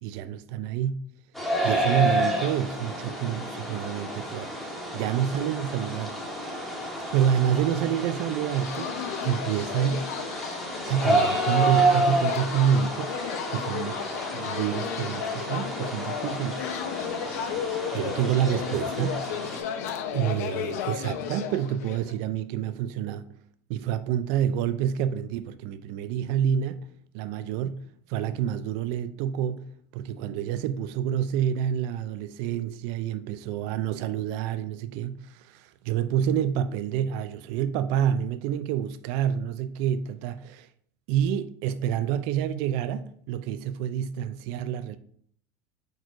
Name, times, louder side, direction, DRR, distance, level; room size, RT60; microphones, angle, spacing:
voice 1, 0.0-1.0 1.6-4.5 4.9-6.9 7.1-8.9 9.2-10.1 10.9-13.2 13.5-14.0 14.3-16.7 17.6-19.2 20.1-23.3 23.7-26.9 27.1-40.7 41.1-45.0, right 9 dB, 55° right, 0.4 m, -28 dB
sound 1, 1.3-19.6, right 2 dB, ahead, 1.1 m, -30 dB
sound 2, 8.5-22.1, left 8 dB, 80° left, 0.7 m, -34 dB
4.5 x 4.5 x 4.7 m
cardioid pair, 165°, 8 cm